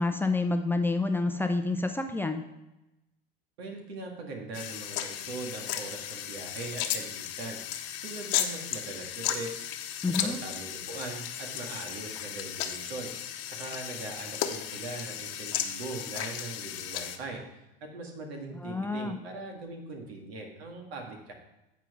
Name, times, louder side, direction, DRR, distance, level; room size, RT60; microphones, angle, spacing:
voice 1, 0.0-2.4 10.0-10.4 18.6-19.2, left 3 dB, 5° left, 5 dB, 0.5 m, -28 dB
voice 2, 3.6-9.7 10.2-21.3, right 3 dB, 85° right, 2 dB, 2.0 m, -41 dB
sound 1, 4.5-17.2, left 10 dB, 50° left, 0.9 m, -35 dB
9.1 x 4.6 x 6.0 m, 0.95 s
supercardioid pair, 105°, 30 cm